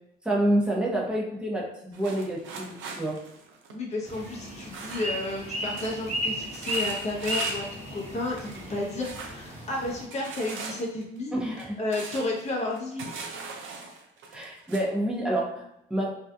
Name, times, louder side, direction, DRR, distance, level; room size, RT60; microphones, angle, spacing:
voice 1, 0.2-3.2 11.3-11.8 14.3-16.1, right 1 dB, 5° right, -3 dB, 0.7 m, -28 dB
sound 1, 1.9-5.4 5.8-6.0 6.3-7.8 8.1-8.7 9.0-9.4 10.1-14.8, right 4 dB, 75° right, 0.5 m, -40 dB
voice 2, 3.7-11.3 11.8-13.0, left 2 dB, 35° left, -2 dB, 0.7 m, -32 dB
sound 2, 4.0-10.0, equal, 35° right, 1.0 m, -34 dB
2.7 x 2.3 x 2.3 m, 0.77 s
cardioid pair, 90°, 20 cm